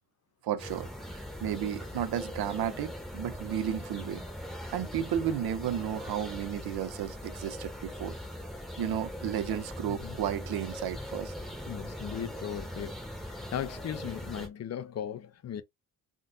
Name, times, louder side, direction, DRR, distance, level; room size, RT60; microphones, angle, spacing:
voice 1, 0.4-4.2 4.7-8.2 8.8-11.3, right 10 dB, 70° right, 0.6 m, -33 dB
sound 1, 0.6-14.5, equal, ahead, 0.9 m, -41 dB
voice 2, 11.7-12.9 13.3-15.6, left 9 dB, 45° left, 0.5 m, -37 dB
3.8 x 2.5 x 2.5 m
cardioid pair, 120°, 39 cm